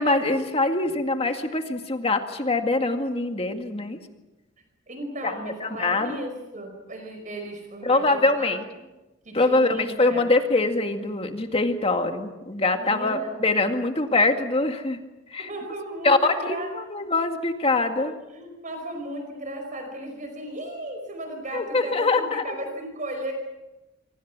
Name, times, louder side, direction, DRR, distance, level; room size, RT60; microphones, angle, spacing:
voice 1, 0.0-4.0 5.2-5.3 5.6-6.2 7.9-8.6 9.3-15.0 15.3-15.5 16.0-18.1 21.5-22.6, left 2 dB, 30° left, 5 dB, 2.1 m, -23 dB
voice 2, 4.9-8.6 9.2-10.2 12.8-13.4 15.4-16.7 18.0-23.3, right 1 dB, 40° right, 4 dB, 5.0 m, -36 dB
27.5 x 25.0 x 6.1 m, 1.0 s
head